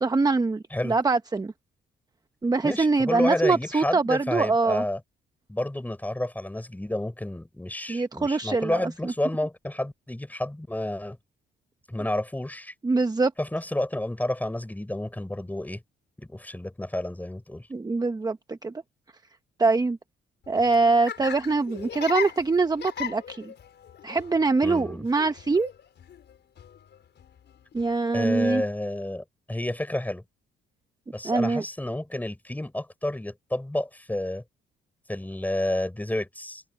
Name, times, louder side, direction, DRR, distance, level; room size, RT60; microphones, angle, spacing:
voice 1, 0.0-1.5 2.4-4.8 7.9-9.1 12.8-13.3 17.7-18.7 19.6-20.0 20.5-23.5 24.0-25.7 27.7-28.6 31.2-31.6, right 3 dB, 20° right, 0.9 m, -24 dB
voice 2, 2.6-5.0 5.5-11.2 11.9-12.7 13.4-15.8 16.2-17.7 24.6-25.0 28.1-30.2 31.1-34.4 35.1-36.6, left 1 dB, 10° left, 5.4 m, -30 dB
Laughter, 20.4-28.0, left 9 dB, 60° left, 5.3 m, -39 dB
cardioid pair, 90°, 20 cm